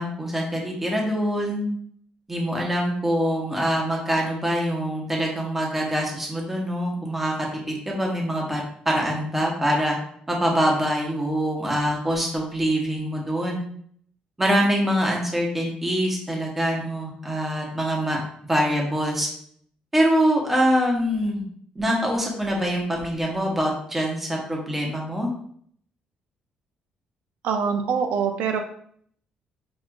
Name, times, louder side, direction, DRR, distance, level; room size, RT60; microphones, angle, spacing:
voice 1, 0.0-1.7 2.3-10.0 10.3-13.6 14.4-18.2 18.5-19.3 19.9-21.4 21.8-25.3, equal, 10° right, -1 dB, 0.7 m, -24 dB
voice 2, 27.4-28.6, right 6 dB, 70° right, 5 dB, 0.4 m, -24 dB
5.9 x 2.4 x 2.2 m, 0.62 s
cardioid pair, 180°, 3 cm